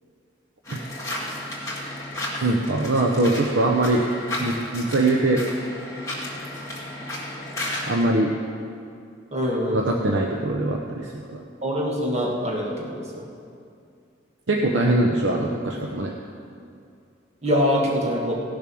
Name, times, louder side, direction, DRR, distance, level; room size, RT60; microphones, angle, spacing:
sound 1, 0.6-8.1, left 1 dB, 15° left, 2.2 m, -33 dB
voice 1, 2.4-4.0 4.4-5.4 7.9-8.3 9.7-11.4 14.5-16.1, right 2 dB, 75° right, 0 dB, 0.8 m, -22 dB
voice 2, 9.3-9.8 11.6-13.2 17.4-18.3, equal, 35° right, -3 dB, 1.6 m, -24 dB
17.0 x 6.9 x 6.2 m, 2.4 s
head